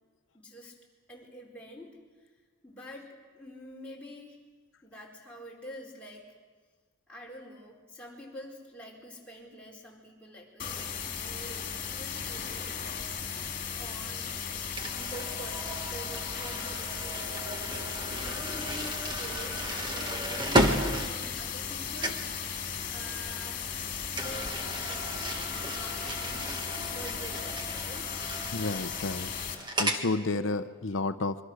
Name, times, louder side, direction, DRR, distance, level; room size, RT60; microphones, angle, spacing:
voice 1, 0.3-0.7 1.1-2.3 2.6-3.1 3.3-4.4 4.8-6.3 7.1-13.2 13.7-14.3 14.9-17.4 17.7-22.2 22.9-23.7 24.1-26.4 26.9-28.1, equal, 5° left, -4 dB, 4.3 m, -47 dB
sound 1, 10.6-29.5, left 7 dB, 40° left, 2.8 m, -36 dB
sound 2, 14.8-21.7 22.0-22.3 24.1-30.1, right 1 dB, 20° right, 1.6 m, -34 dB
voice 2, 28.5-29.3 29.8-31.4, left 3 dB, 65° left, 11 dB, 0.7 m, -31 dB
25.5 x 23.5 x 6.5 m, 1.5 s
head